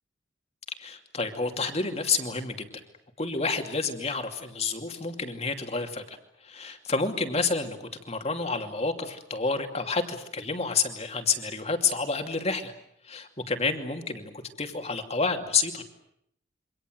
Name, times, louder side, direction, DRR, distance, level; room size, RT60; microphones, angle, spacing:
voice 1, 0.8-2.7 3.2-6.2 6.4-12.7 13.0-14.3 14.6-15.8, left 4 dB, 30° left, 6 dB, 2.6 m, -29 dB
28.0 x 25.0 x 7.8 m, 0.73 s
head